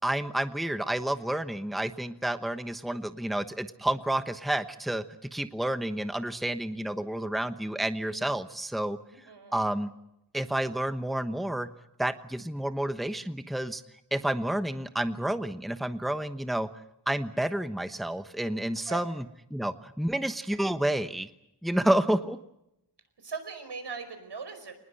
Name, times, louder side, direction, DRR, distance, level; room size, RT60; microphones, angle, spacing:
voice 1, 0.0-5.0 5.3-9.0 9.5-9.9 10.3-11.7 12.0-13.8 14.1-16.7 17.1-19.2 19.5-21.3 21.6-22.4, right 1 dB, ahead, 10 dB, 1.1 m, -30 dB
voice 2, 9.3-9.6 18.9-19.1 23.2-24.8, right 5 dB, 80° right, 8 dB, 5.2 m, -39 dB
26.0 x 20.0 x 7.9 m, 0.83 s
wide cardioid pair, 105°, 41 cm